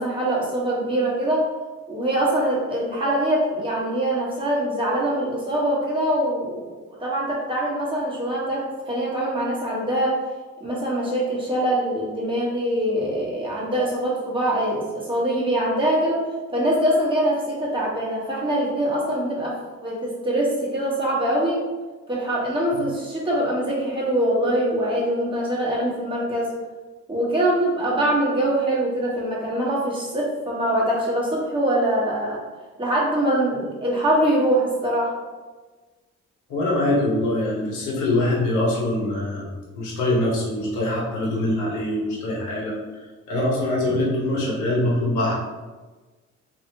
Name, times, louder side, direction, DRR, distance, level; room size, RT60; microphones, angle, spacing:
voice 1, 0.0-1.5 1.9-6.7 7.0-10.1 10.6-16.2 16.5-19.5 19.8-21.6 22.1-26.5 27.1-32.4 32.8-35.1, right 1 dB, 15° right, -5 dB, 1.2 m, -23 dB
voice 2, 36.5-39.5 39.7-42.8 43.3-45.3, left 1 dB, 85° left, -4 dB, 1.1 m, -23 dB
3.2 x 2.8 x 2.8 m, 1.3 s
cardioid pair, 90°, 30 cm